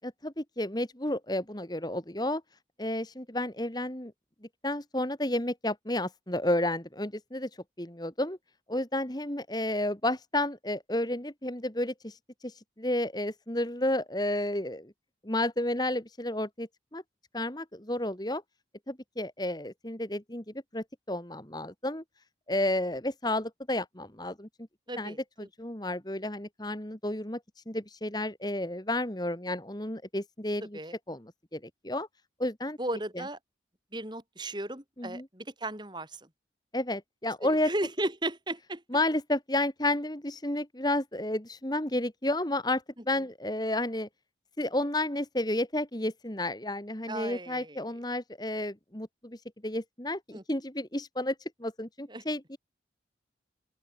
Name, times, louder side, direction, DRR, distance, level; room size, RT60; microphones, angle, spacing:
voice 1, 0.0-2.4 2.8-4.1 4.6-7.5 7.8-8.4 8.7-12.2 12.4-14.9 15.2-17.0 17.3-18.4 18.9-20.4 20.7-22.0 22.5-24.5 25.0-27.4 27.7-30.8 31.1-32.1 32.4-32.8 33.1-33.2 35.0-35.3 36.7-37.7 38.9-44.1 44.6-51.3 51.6-52.6, left 1 dB, 20° left, 2.2 m, -31 dB
voice 2, 24.9-25.2 30.7-30.9 32.8-33.4 33.9-36.1 37.6-38.8 47.1-47.8 50.3-50.4 52.1-52.2, right 1 dB, 25° right, 7.3 m, -35 dB
open air
head